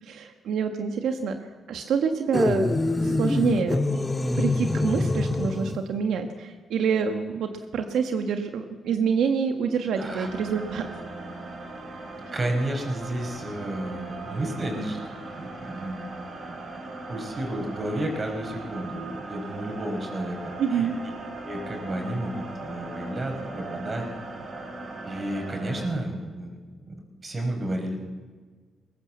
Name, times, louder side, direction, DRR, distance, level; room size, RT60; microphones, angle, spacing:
voice 1, 0.0-1.3 1.7-4.1 4.4-10.9 20.6-21.0, right 6 dB, 85° right, 6 dB, 1.5 m, -27 dB
sound 1, 2.3-5.8, left 2 dB, 15° left, 1.1 m, -25 dB
voice 2, 10.0-10.3 12.3-15.0 15.4-16.0 16.5-16.6 17.1-20.4 20.7-20.9 21.4-24.1 25.0-26.6 26.9-28.0, right 1 dB, 35° right, 4 dB, 5.4 m, -31 dB
sound 2, 10.0-25.9, right 2 dB, 55° right, 6.2 m, -39 dB
21.5 x 18.5 x 7.5 m, 1.5 s
cardioid pair, 100°, 0 cm